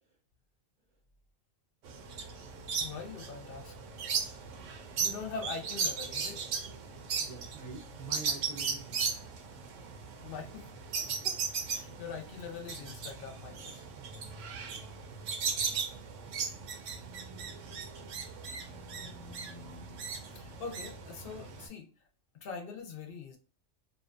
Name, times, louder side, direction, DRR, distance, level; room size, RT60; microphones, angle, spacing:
sound 1, 1.8-21.7, right 5 dB, 75° right, 0.9 m, -37 dB
voice 1, 2.8-3.7 5.0-6.4 10.2-11.4 11.7-13.9 20.3-21.9 22.3-23.4, left 5 dB, 60° left, 4 dB, 0.6 m, -43 dB
voice 2, 7.2-9.3 14.0-14.8, right 3 dB, 50° right, 0 dB, 0.5 m, -47 dB
2.7 x 2.2 x 2.4 m, 0.38 s
omnidirectional pair, 1.3 m